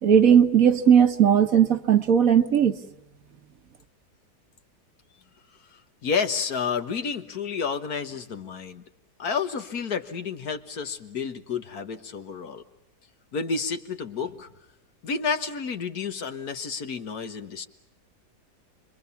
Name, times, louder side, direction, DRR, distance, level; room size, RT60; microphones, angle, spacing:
voice 1, 0.0-2.8, right 8 dB, 60° right, 8 dB, 1.5 m, -18 dB
voice 2, 5.7-8.8 9.2-12.6 13.3-14.5 15.0-17.7, left 5 dB, 65° left, 8 dB, 1.9 m, -30 dB
29.5 x 22.5 x 7.1 m, 0.86 s
omnidirectional pair, 1.8 m